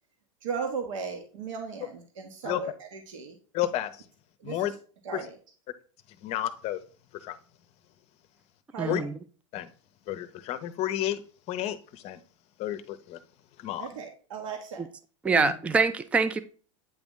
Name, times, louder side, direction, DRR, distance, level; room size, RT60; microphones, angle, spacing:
voice 1, 0.4-3.4 4.4-4.8 5.0-5.4 8.7-9.0 13.8-14.8 15.3-15.4, right 5 dB, 75° right, 1.0 m, -36 dB
voice 2, 3.5-3.9 4.4-4.7 5.1-5.2 6.2-6.8 7.2-7.4 8.9-9.0 9.5-9.7 10.1-11.2 11.5-12.2 12.6-13.2 13.6-13.9 15.4-15.5, left 13 dB, 40° left, 0.6 m, -31 dB
voice 3, 8.8-9.1 14.8-14.9 15.2-16.4, right 4 dB, 10° right, 0.3 m, -25 dB
8.7 x 3.0 x 3.7 m
hypercardioid pair, 115°, 16 cm